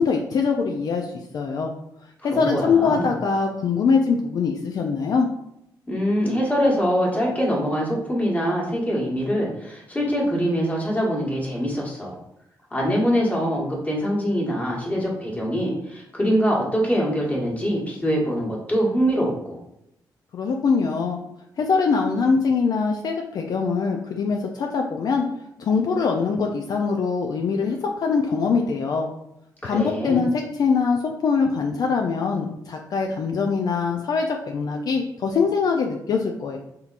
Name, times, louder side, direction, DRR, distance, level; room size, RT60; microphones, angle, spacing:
voice 1, 0.0-1.7 2.2-5.3 20.3-21.2 21.6-25.3 25.6-29.1 29.6-36.6, left 5 dB, 60° left, 2 dB, 0.4 m, -23 dB
voice 2, 2.3-3.1 5.9-12.2 12.7-19.6 29.6-30.2, equal, 20° left, -4 dB, 1.3 m, -23 dB
3.6 x 2.8 x 2.4 m, 0.80 s
cardioid pair, 80°, 8 cm